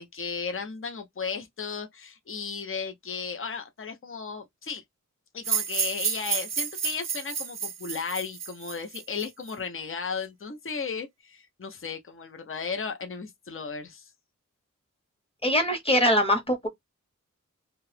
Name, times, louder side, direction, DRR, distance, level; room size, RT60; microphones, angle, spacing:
voice 1, 0.0-4.8 5.3-14.1, left 5 dB, 40° left, 0.7 m, -35 dB
sound 1, 5.4-9.5, right 6 dB, 55° right, 0.5 m, -30 dB
voice 2, 15.4-16.7, equal, 20° left, 1.1 m, -22 dB
2.7 x 2.4 x 3.2 m
wide cardioid pair, 80°, 31 cm